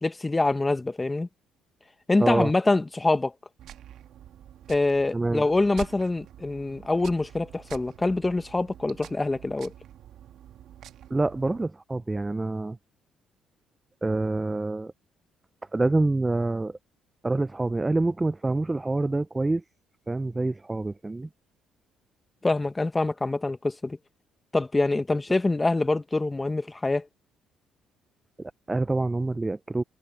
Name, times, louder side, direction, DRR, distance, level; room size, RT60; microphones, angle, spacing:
voice 1, 0.0-1.3 2.1-3.3 4.7-9.7 22.4-24.0 24.5-27.0, left 2 dB, 20° left, 1.3 m, -25 dB
voice 2, 2.2-2.5 5.1-5.4 11.1-12.8 14.0-14.9 15.7-16.8 17.2-19.6 20.1-21.3 28.4-29.8, right 2 dB, 20° right, 0.6 m, -26 dB
sound 1, 3.6-11.7, right 11 dB, 70° right, 1.4 m, -46 dB
supercardioid pair, 70°, 0 cm